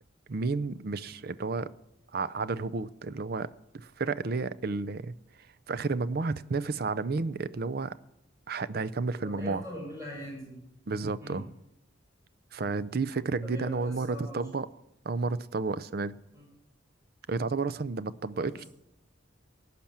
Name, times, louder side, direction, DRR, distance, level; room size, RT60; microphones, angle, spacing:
voice 1, 0.3-1.7 2.1-3.5 3.7-5.1 5.7-8.0 8.5-9.6 10.9-11.5 12.5-14.7 15.0-16.1 17.3-18.6, right 4 dB, 50° right, 16 dB, 0.5 m, -31 dB
voice 2, 9.1-10.6 11.2-11.4 13.4-14.4 16.3-16.5 18.3-18.7, left 1 dB, 15° right, -3 dB, 6.2 m, -42 dB
17.5 x 6.0 x 8.7 m, 0.83 s
head